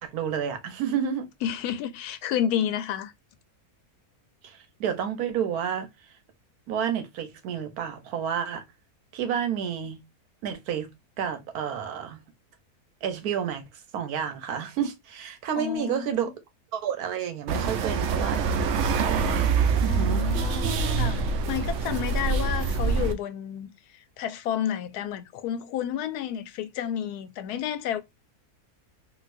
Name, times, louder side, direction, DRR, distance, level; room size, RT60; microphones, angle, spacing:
voice 1, 0.0-1.3 4.4-5.9 6.7-8.6 9.1-10.0 10.4-10.9 11.2-12.2 13.0-13.6 13.9-16.3 16.7-19.4 19.8-20.2, right 8 dB, 80° right, 1.2 m, -30 dB
voice 2, 1.4-3.1 15.5-16.3 19.8-23.7 24.2-28.0, left 10 dB, 85° left, 1.1 m, -31 dB
sound 1, 17.5-23.1, right 5 dB, 65° right, 0.8 m, -25 dB
3.9 x 2.5 x 2.5 m
omnidirectional pair, 1.6 m